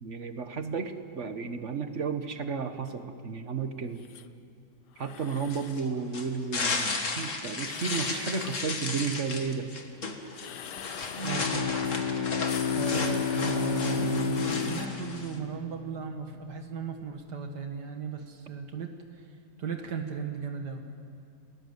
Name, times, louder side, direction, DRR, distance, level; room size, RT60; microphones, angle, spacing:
voice 1, 0.0-4.0 5.0-9.7, right 5 dB, 45° right, 9 dB, 1.4 m, -33 dB
sound 1, 4.0-4.3 4.9-5.8 7.6-8.6 10.3-11.4 11.8-12.1 12.3-14.9, left 10 dB, 75° left, 1.4 m, -44 dB
sound 2, 5.5-15.4, left 3 dB, 45° left, 2.1 m, -34 dB
Bowed string instrument, 11.1-16.2, left 7 dB, 30° left, 1.2 m, -31 dB
voice 2, 11.2-11.7 12.7-19.3 19.6-20.9, right 6 dB, 75° right, 5 dB, 2.1 m, -36 dB
28.5 x 18.5 x 8.0 m, 2.3 s
omnidirectional pair, 1.8 m